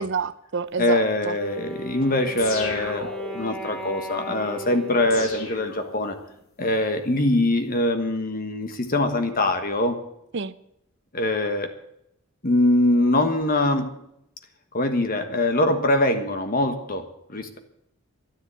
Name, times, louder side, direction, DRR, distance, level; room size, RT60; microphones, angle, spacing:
voice 1, 0.0-1.4 10.3-10.6, right 5 dB, 55° right, 0.7 m, -28 dB
voice 2, 0.8-6.2 6.6-10.0 11.1-11.7 12.4-14.0 14.7-17.6, left 1 dB, 40° left, 1.3 m, -23 dB
Wind instrument woodwind instrument, 1.4-6.4, left 1 dB, 5° left, 2.0 m, -37 dB
sound 1, 2.4-3.6 5.1-6.4, left 3 dB, 65° left, 2.8 m, -35 dB
13.0 x 10.5 x 8.2 m
head